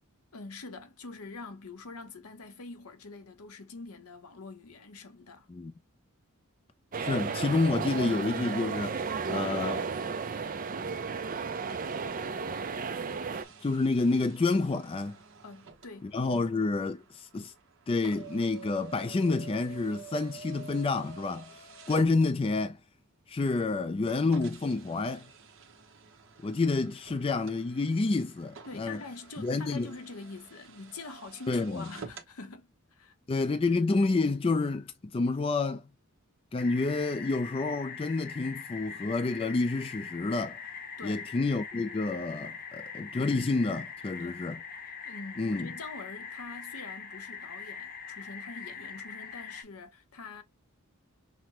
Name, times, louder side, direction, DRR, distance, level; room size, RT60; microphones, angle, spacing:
voice 1, 0.3-5.5 15.4-16.5 28.7-33.1 41.0-41.2 44.2-44.5 44.9-50.4, left 3 dB, 75° left, 0.9 m, -45 dB
sound 1, 6.9-13.4, right 5 dB, 40° right, 0.5 m, -33 dB
voice 2, 7.0-9.0 9.3-9.9 13.6-15.2 16.1-17.5 17.9-21.5 21.9-22.8 23.3-25.3 26.4-29.0 29.4-29.9 31.5-31.9 33.3-35.8 36.5-40.6 41.0-44.6 45.4-45.7, left 3 dB, 25° left, 0.3 m, -29 dB
sound 2, 13.3-22.8 23.5-23.6 24.3-32.3, right 6 dB, 60° right, 1.0 m, -50 dB
sound 3, 36.6-49.6, left 6 dB, 40° left, 0.8 m, -42 dB
5.8 x 2.2 x 2.8 m
head